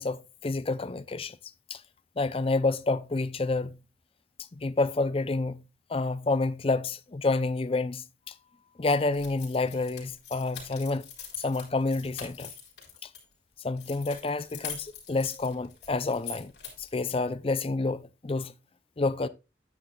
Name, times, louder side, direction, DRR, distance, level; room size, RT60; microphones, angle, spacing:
voice 1, 0.0-1.4 1.7-1.8 2.2-3.8 4.5-5.6 5.9-8.0 8.8-11.1 11.4-12.5 13.0-13.1 13.6-16.5 16.8-18.5 19.0-19.3, left 3 dB, 30° left, 0.5 m, -29 dB
sound 1, 9.1-13.2 13.8-17.0, left 7 dB, 70° left, 3.9 m, -43 dB
9.7 x 9.6 x 2.3 m
head